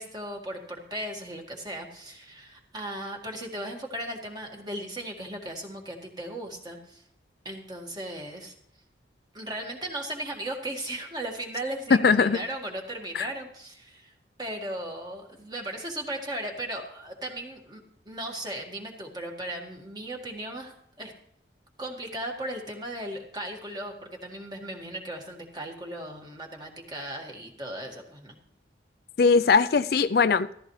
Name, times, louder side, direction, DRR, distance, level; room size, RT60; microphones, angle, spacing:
voice 1, 0.0-7.0 7.5-8.5 9.3-14.1 14.4-21.1 21.8-28.4, right 1 dB, 20° right, 1.9 m, -37 dB
voice 2, 11.9-12.4 13.1-13.3 29.2-30.5, left 5 dB, 55° left, 0.4 m, -20 dB
14.5 x 14.5 x 3.2 m
head